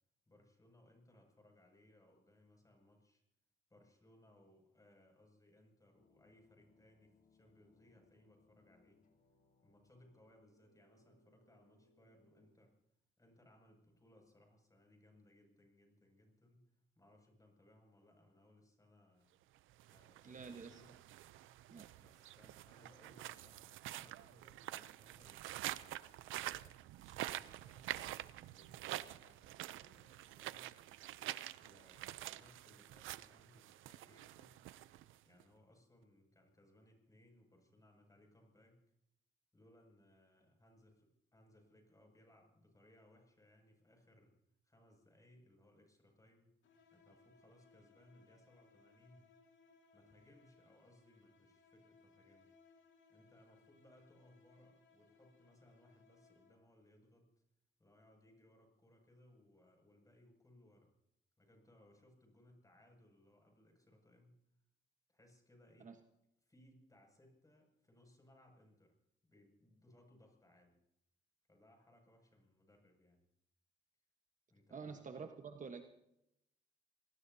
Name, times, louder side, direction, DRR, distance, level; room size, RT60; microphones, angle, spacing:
voice 1, 0.3-3.2 3.7-9.0 9.6-12.8 13.2-19.3 19.9-20.9 22.0-25.8 26.5-30.7 31.6-34.6 35.2-38.8 39.5-44.4 44.6-46.5 46.9-49.3 49.9-52.6 53.1-57.3 57.8-60.9 61.4-64.4 65.1-66.0 66.4-69.0 69.2-70.8 71.5-73.2 74.5-75.3, left 1 dB, 15° left, 3 dB, 6.7 m, -67 dB
sound 1, 5.9-12.5, left 3 dB, 45° left, 4.7 m, -73 dB
sound 2, 19.7-35.4, right 14 dB, 85° right, 0.6 m, -47 dB
voice 2, 20.2-20.8 21.7-21.9 65.8-66.0 74.7-75.8, right 5 dB, 40° right, 5 dB, 1.3 m, -48 dB
sound 3, 46.6-56.8, left 4 dB, 70° left, 2.5 m, -69 dB
27.0 x 19.0 x 2.8 m, 0.80 s
cardioid pair, 90°, 20 cm